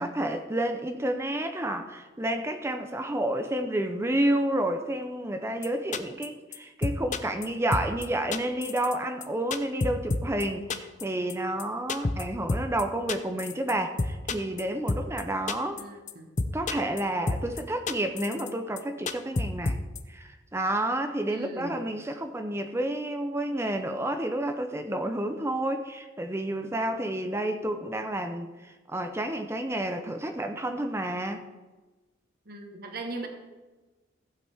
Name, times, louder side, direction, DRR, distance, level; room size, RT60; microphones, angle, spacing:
voice 1, 0.0-15.8 16.5-19.8 20.1-31.5, right 1 dB, 15° right, 6 dB, 0.6 m, -30 dB
sound 1, 5.6-5.7 5.9-6.3 6.5-6.6 6.8-7.5 7.7-8.1 8.3-9.0 9.2-10.4 10.7-11.0 11.3-11.4 11.6-11.7 11.9-12.2 12.5-12.8 13.1-13.7 14.0-14.6 14.9-15.2 15.5-15.8 16.1-16.2 16.4-17.0 17.3-17.6 17.9-18.5 18.8-18.9 19.1-20.0, left 3 dB, 40° left, 0.6 m, -29 dB
voice 2, 15.8-16.3 21.3-21.8 32.4-33.3, right 2 dB, 55° right, 3 dB, 1.3 m, -39 dB
15.5 x 8.2 x 3.5 m, 1.2 s
head